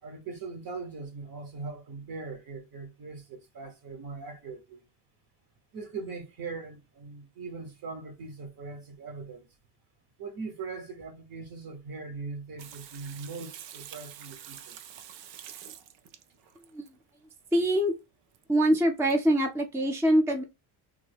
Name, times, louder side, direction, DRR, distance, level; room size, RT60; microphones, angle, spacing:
voice 1, 0.0-4.8 5.7-9.5 10.2-14.8, right 4 dB, 50° right, 1.1 m, -40 dB
Water tap faucet / Sink (filling or washing), 12.6-16.9 18.3-18.4 18.7-18.8 19.1-19.2, right 10 dB, 90° right, 0.6 m, -47 dB
voice 2, 17.5-18.0 18.5-20.4, right 1 dB, 5° right, 0.5 m, -24 dB
3.4 x 2.1 x 3.4 m
cardioid pair, 120°, 43 cm